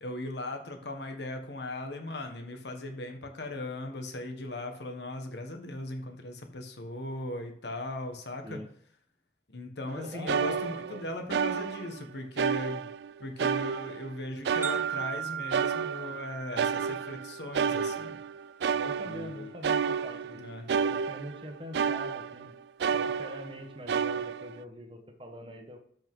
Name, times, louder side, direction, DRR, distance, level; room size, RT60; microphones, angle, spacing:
voice 1, 0.0-8.6 9.5-12.9 13.2-18.2 19.0-19.6 20.3-20.7, left 1 dB, 80° left, 4 dB, 1.5 m, -38 dB
sound 1, 9.9-10.0 10.3-12.0 12.4-13.1 13.4-16.3 16.6-22.5 22.8-23.6 23.9-24.6, right 6 dB, 75° right, 0.3 m, -31 dB
voice 2, 10.0-11.0 18.7-20.4 20.7-22.5 22.9-25.8, equal, 30° right, 4 dB, 1.2 m, -43 dB
sound 2, 14.6-18.6, right 9 dB, 15° right, 0.8 m, -38 dB
13.0 x 5.3 x 3.8 m, 0.62 s
head